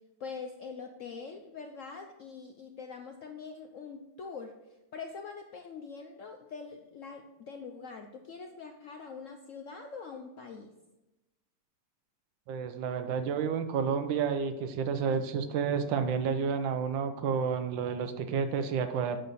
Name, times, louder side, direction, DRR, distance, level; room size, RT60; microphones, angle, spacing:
voice 1, 0.2-4.5 4.9-10.7 15.1-15.2, left 5 dB, 75° left, 5 dB, 0.7 m, -44 dB
voice 2, 12.5-19.2, right 6 dB, 90° right, 8 dB, 1.5 m, -30 dB
8.2 x 6.6 x 4.0 m, 1.0 s
omnidirectional pair, 2.0 m